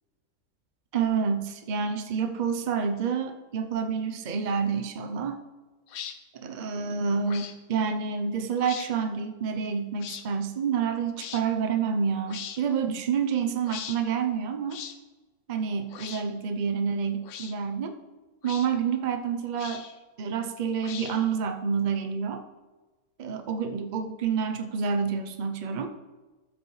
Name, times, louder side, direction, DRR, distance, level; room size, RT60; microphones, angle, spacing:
voice 1, 0.9-5.4 6.4-14.8 15.5-18.0 18.4-19.8 20.2-22.4 23.2-25.9, right 6 dB, 90° right, 5 dB, 0.4 m, -28 dB
sound 1, 5.9-6.2 7.2-7.6 8.6-8.9 10.0-10.2 11.2-11.4 12.3-12.6 13.6-14.0 14.7-15.0 15.9-16.2 17.2-17.5 18.4-18.7 19.5-20.0 20.8-21.3, left 8 dB, 65° left, 0.8 m, -40 dB
13.0 x 7.8 x 3.2 m, 1.2 s
omnidirectional pair, 1.8 m